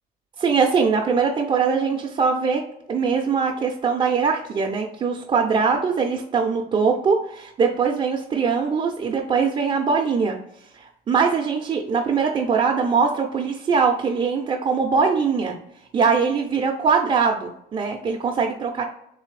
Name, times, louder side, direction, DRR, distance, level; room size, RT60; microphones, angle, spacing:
voice 1, 0.4-2.6 2.9-10.4 10.7-15.6 15.9-18.8, right 5 dB, 30° right, 0 dB, 0.4 m, -22 dB
3.3 x 3.1 x 3.1 m, 0.78 s
cardioid pair, 110°, 17 cm